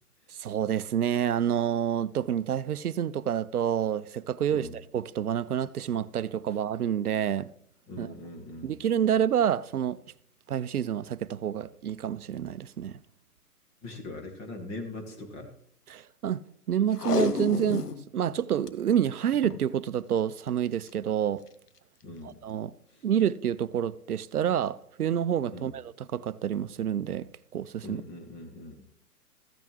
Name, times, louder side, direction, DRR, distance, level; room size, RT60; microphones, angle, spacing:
voice 1, 0.3-7.5 8.0-8.1 8.6-10.0 10.5-13.0 15.9-16.4 16.7-21.4 22.2-22.7 23.0-28.0, right 9 dB, 70° right, 0.6 m, -28 dB
voice 2, 7.9-8.8 13.8-15.5 22.0-22.4 22.9-23.1 25.5-25.8 27.8-28.9, left 2 dB, 15° left, 0.9 m, -41 dB
Packing tape duct tape, 16.9-18.0 18.4-18.5 18.7-18.8 19.3-19.6 20.7-20.9 21.5-21.6, left 5 dB, 85° left, 1.0 m, -30 dB
14.5 x 8.6 x 3.1 m
figure-of-eight pair, 135°, 46 cm